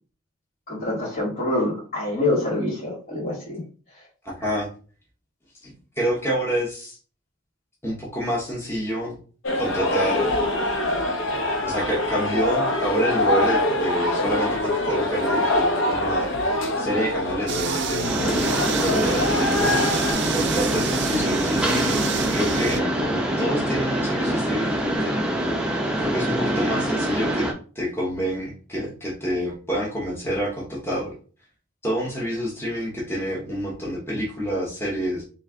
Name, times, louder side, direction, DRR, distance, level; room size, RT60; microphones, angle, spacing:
voice 1, 0.7-3.6, left 2 dB, 45° left, -12 dB, 2.1 m, -26 dB
voice 2, 4.2-4.7 5.6-7.0 7.8-9.2 9.5-10.4 11.6-16.4 16.8-18.3 18.8-19.7 20.3-25.5 26.0-27.5 27.7-31.1 31.8-35.2, equal, 10° left, -4 dB, 1.0 m, -28 dB
sound 1, 9.4-20.1, left 1 dB, 65° left, 0.8 m, -24 dB
sound 2, 17.5-22.8, right 6 dB, 55° right, 0.4 m, -29 dB
Mechanisms, 18.0-27.5, right 1 dB, 5° right, 0.6 m, -24 dB
3.2 x 3.1 x 3.6 m, 0.38 s
head